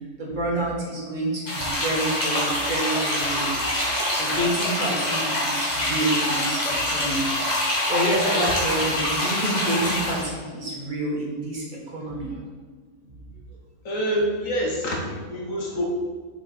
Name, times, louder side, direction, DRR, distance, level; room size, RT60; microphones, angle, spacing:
voice 1, 0.2-3.5 4.1-7.3 7.9-12.4, right 1 dB, 35° right, -3 dB, 1.7 m, -28 dB
sound 1, 1.5-10.3, left 1 dB, 30° left, 1.7 m, -25 dB
voice 2, 13.8-15.9, equal, 65° left, -2 dB, 1.5 m, -26 dB
6.6 x 5.1 x 4.3 m, 1.5 s
omnidirectional pair, 1.6 m